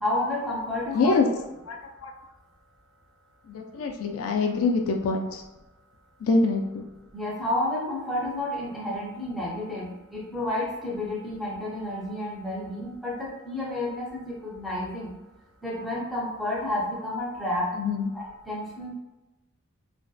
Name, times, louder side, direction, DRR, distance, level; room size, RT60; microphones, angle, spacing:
voice 1, 0.0-1.2 7.1-15.1 15.6-17.7 18.1-18.9, left 1 dB, ahead, -5 dB, 0.5 m, -30 dB
voice 2, 0.9-1.3 1.7-2.1 3.5-5.4 6.2-6.9 17.7-18.1, left 3 dB, 85° left, 3 dB, 0.3 m, -25 dB
2.6 x 2.1 x 2.3 m, 1.0 s
head